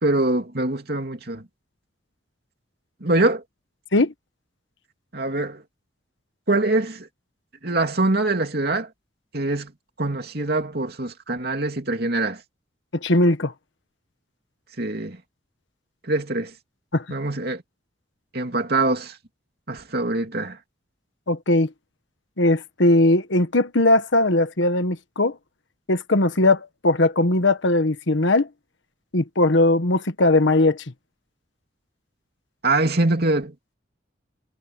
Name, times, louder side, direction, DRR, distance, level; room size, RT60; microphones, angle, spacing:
voice 1, 0.0-1.4 3.0-3.4 5.1-5.6 6.5-7.1 7.6-8.9 9.3-9.7 10.0-12.4 14.8-15.2 16.0-16.5 17.1-17.6 18.3-19.2 19.7-20.6 32.6-33.8, right 2 dB, 55° right, 2.9 m, -24 dB
voice 2, 13.0-13.5 16.9-17.0 21.3-21.7 22.4-25.3 25.9-28.5 29.1-30.8, left 2 dB, 75° left, 1.4 m, -19 dB
head